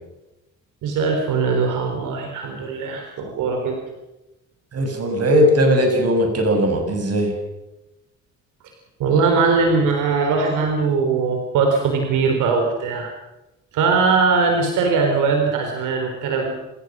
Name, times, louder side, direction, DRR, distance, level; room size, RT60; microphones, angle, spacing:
voice 1, 0.8-3.8 9.0-13.1 13.7-16.5, right 4 dB, 90° right, 3 dB, 4.2 m, -20 dB
voice 2, 4.7-7.3, equal, 55° right, 4 dB, 7.4 m, -18 dB
27.0 x 16.5 x 6.4 m, 0.97 s
cardioid pair, 90°, 30 cm